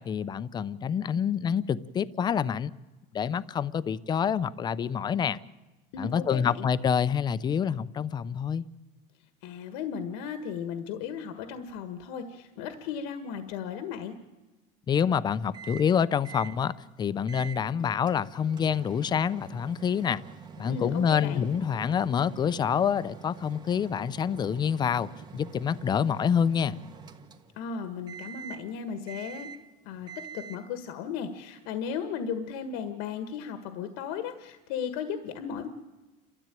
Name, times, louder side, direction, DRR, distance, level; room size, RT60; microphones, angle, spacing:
voice 1, 0.1-2.7 3.1-5.4 6.0-8.6 14.9-16.7 17.0-20.2 20.6-26.8, left 7 dB, 25° left, 16 dB, 0.7 m, -27 dB
voice 2, 5.9-6.7 9.4-14.2 20.7-21.5 27.6-29.5 29.9-35.7, left 7 dB, 85° left, 9 dB, 1.6 m, -35 dB
Microwave oven, 15.5-15.9 16.2-16.6 17.3-17.6 18.1-27.7 28.1-28.7 29.1-29.7 30.1-30.7, right 7 dB, 25° right, 1.5 m, -46 dB
29.5 x 13.5 x 9.2 m, 1.2 s
cardioid pair, 145°, 17 cm